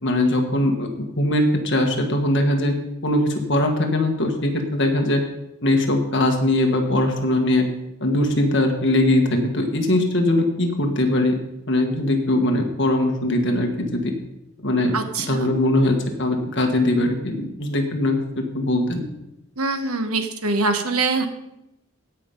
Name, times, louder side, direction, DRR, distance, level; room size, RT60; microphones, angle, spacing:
voice 1, 0.0-2.7 3.0-5.2 5.6-7.6 8.0-11.3 11.7-14.1 14.6-15.0 15.3-18.2 18.5-19.0, left 1 dB, 55° left, 3 dB, 1.6 m, -21 dB
voice 2, 14.9-15.5 19.6-21.3, right 3 dB, 85° right, 7 dB, 1.3 m, -23 dB
16.0 x 5.8 x 5.3 m, 0.87 s
head